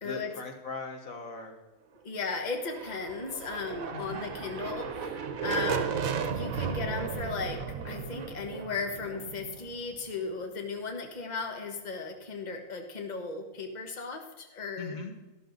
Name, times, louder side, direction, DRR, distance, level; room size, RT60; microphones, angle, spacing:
voice 1, 0.0-1.6 3.9-4.3 14.8-15.1, left 4 dB, 80° left, 4 dB, 2.0 m, -39 dB
voice 2, 2.0-6.0 6.3-7.6 7.8-15.0, left 4 dB, 35° left, 4 dB, 1.4 m, -36 dB
sound 1, 2.5-10.3, right 5 dB, 80° right, 1.5 m, -35 dB
12.5 x 12.0 x 4.0 m, 1.1 s
omnidirectional pair, 1.4 m